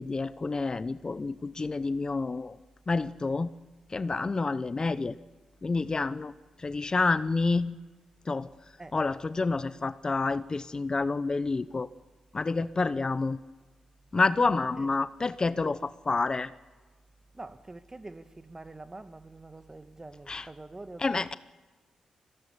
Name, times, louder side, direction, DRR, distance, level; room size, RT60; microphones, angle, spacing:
voice 1, 0.0-2.6 2.9-3.5 3.9-5.2 5.6-6.3 6.6-7.8 8.3-8.5 8.9-11.9 12.3-13.4 14.1-16.5 20.3-20.5 21.0-21.3, left 3 dB, 35° left, 0.8 m, -28 dB
voice 2, 17.3-21.4, right 2 dB, 25° right, 1.8 m, -45 dB
21.5 x 17.5 x 9.9 m
supercardioid pair, 50°, 2 cm